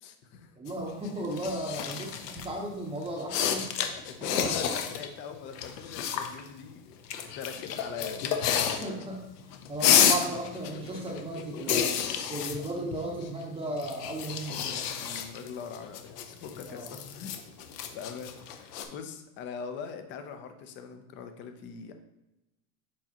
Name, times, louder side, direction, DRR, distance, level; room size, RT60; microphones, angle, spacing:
voice 1, 0.0-0.6 3.5-3.7 4.0-7.0 7.2-8.3 11.6-11.9 15.0-17.4 17.9-21.9, left 6 dB, 25° left, 7 dB, 0.5 m, -42 dB
voice 2, 0.6-3.7 4.2-4.6 8.8-9.2 9.7-11.9 12.3-14.8 16.7-16.9, right 1 dB, 10° right, -2 dB, 0.8 m, -35 dB
sound 1, 0.7-2.5 3.1-5.1 5.3-6.5 7.1-9.1 9.4-13.4 13.8-18.8, left 8 dB, 75° left, 1.0 m, -30 dB
7.3 x 4.4 x 2.9 m, 0.93 s
supercardioid pair, 145°, 48 cm